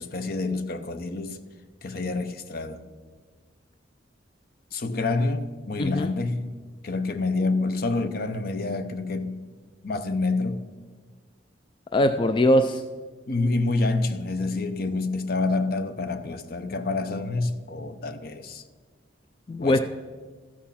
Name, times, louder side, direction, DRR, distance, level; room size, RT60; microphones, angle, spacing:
voice 1, 0.0-1.4 1.8-2.8 4.7-6.6 6.8-9.4 9.8-10.6 13.3-18.6 19.6-19.8, left 3 dB, 55° left, 0.7 m, -27 dB
voice 2, 5.8-6.1 11.9-12.8 19.5-19.8, left 1 dB, 25° left, 0.3 m, -21 dB
13.5 x 6.2 x 5.7 m
head